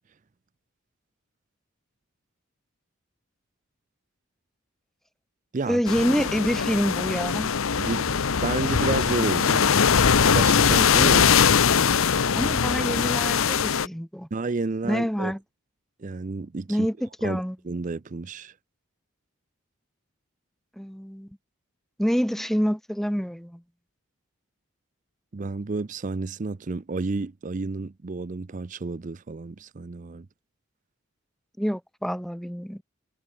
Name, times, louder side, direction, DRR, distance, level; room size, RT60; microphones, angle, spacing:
voice 1, 5.7-7.5 12.3-14.3 14.8-15.4 16.7-17.6 20.8-21.3 22.0-23.6 31.6-32.8, equal, ahead, 1.9 m, -27 dB
sound 1, 5.9-13.9, left 6 dB, 75° left, 0.8 m, -21 dB
voice 2, 7.8-9.8 10.3-11.3 14.3-15.3 16.0-16.9 17.2-17.4 17.7-18.5 25.3-30.3, right 3 dB, 35° right, 0.5 m, -31 dB
head